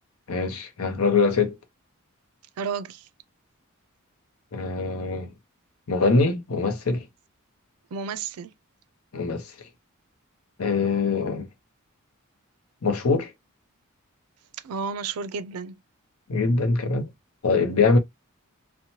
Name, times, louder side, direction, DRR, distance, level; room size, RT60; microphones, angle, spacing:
voice 1, 0.3-1.6 4.5-5.3 5.9-7.1 9.1-9.5 10.6-11.5 12.8-13.3 16.3-17.1 17.4-18.0, left 4 dB, 75° left, 0.7 m, -23 dB
voice 2, 2.6-3.1 7.9-8.5 14.6-15.7, right 5 dB, 80° right, 0.4 m, -32 dB
2.7 x 2.1 x 2.9 m
head